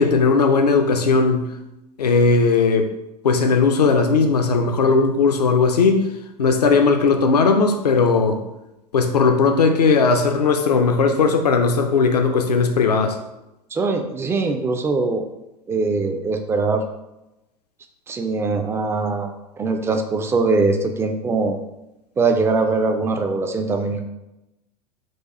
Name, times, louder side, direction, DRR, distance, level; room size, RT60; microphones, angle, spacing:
voice 1, 0.0-1.5 2.0-2.9 3.2-6.0 6.4-8.4 8.9-13.2, left 4 dB, 70° left, 5 dB, 0.6 m, -17 dB
voice 2, 13.7-15.2 15.7-16.8 18.1-19.3 19.6-21.6 22.2-24.1, right 3 dB, 10° right, 5 dB, 0.3 m, -21 dB
4.8 x 2.3 x 4.1 m, 0.93 s
figure-of-eight pair, 85°, 21 cm